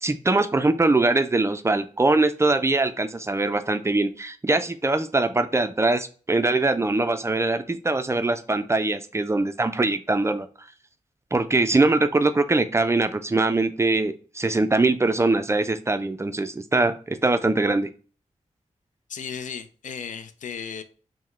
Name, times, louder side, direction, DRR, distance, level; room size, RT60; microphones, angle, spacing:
voice 1, 0.0-10.5 11.3-17.9, right 2 dB, 20° right, 0.4 m, -22 dB
voice 2, 19.1-20.8, left 7 dB, 75° left, 0.4 m, -35 dB
5.6 x 2.1 x 3.1 m
cardioid pair, 65°, 13 cm